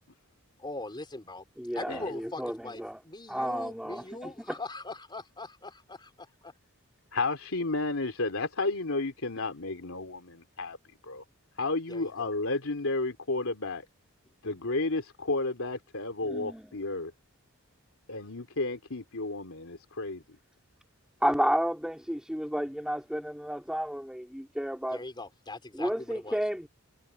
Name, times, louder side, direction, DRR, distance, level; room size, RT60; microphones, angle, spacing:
voice 1, 0.6-1.4 1.8-6.5 11.9-12.3 24.9-26.4, left 2 dB, 20° left, 3.9 m, -41 dB
voice 2, 1.6-3.0 3.3-4.6 16.2-16.7 21.2-25.0 25.7-26.7, equal, 5° right, 3.9 m, -32 dB
voice 3, 7.1-10.8 11.0-11.2 11.6-13.9 14.4-17.1 18.1-20.2, left 3 dB, 70° left, 3.5 m, -32 dB
head